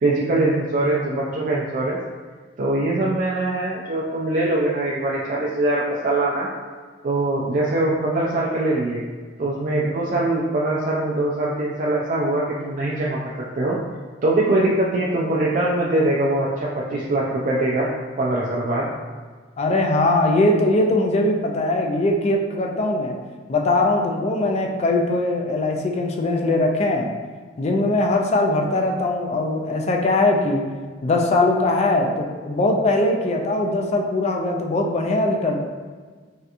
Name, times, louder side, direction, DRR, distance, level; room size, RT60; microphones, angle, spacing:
voice 1, 0.0-2.0 2.6-6.5 7.0-9.0 9.4-13.2 13.6-13.8 14.2-17.9 18.2-18.9, right 2 dB, 45° right, -5 dB, 0.3 m, -22 dB
voice 2, 19.6-23.1 23.5-27.1 27.6-30.6 31.0-35.6, left 2 dB, 35° left, 2 dB, 0.3 m, -21 dB
3.3 x 2.8 x 2.4 m, 1.5 s
head